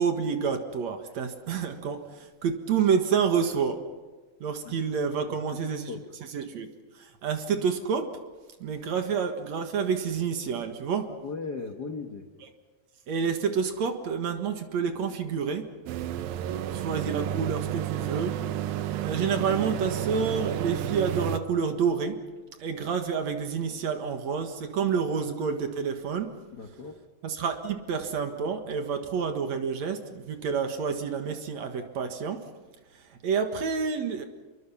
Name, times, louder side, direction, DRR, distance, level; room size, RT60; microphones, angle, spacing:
voice 1, 0.0-3.8 4.4-5.9 6.3-6.7 7.0-8.1 8.6-11.1 13.1-15.7 16.7-18.4 19.0-22.2 22.6-26.3 27.2-32.4 33.2-34.2, right 6 dB, 55° right, 6 dB, 2.6 m, -28 dB
voice 2, 5.2-6.0 11.1-12.3 26.5-27.0, left 4 dB, 75° left, 6 dB, 0.9 m, -38 dB
sound 1, 15.9-21.4, right 11 dB, 80° right, 2.7 m, -31 dB
26.5 x 23.0 x 5.8 m, 1.3 s
omnidirectional pair, 4.1 m